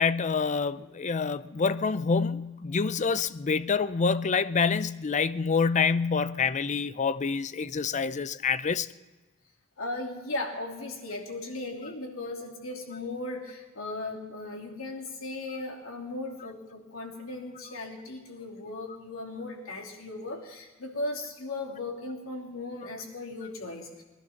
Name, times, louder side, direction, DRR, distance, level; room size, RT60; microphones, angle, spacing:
voice 1, 0.0-8.9, left 5 dB, 35° left, 0.5 m, -27 dB
voice 2, 9.8-24.0, left 2 dB, 85° left, 2.8 m, -37 dB
20.0 x 11.5 x 5.8 m
head